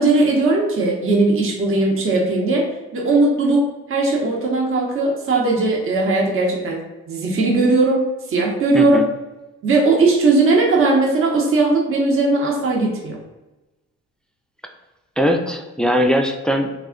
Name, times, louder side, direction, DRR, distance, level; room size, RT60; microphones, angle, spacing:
voice 1, 0.0-9.0 9.6-13.2, right 3 dB, 45° right, -1 dB, 0.8 m, -18 dB
voice 2, 8.7-9.0 15.2-16.9, equal, 5° left, 4 dB, 0.3 m, -20 dB
3.3 x 2.1 x 3.6 m, 1.1 s
cardioid pair, 90°, 30 cm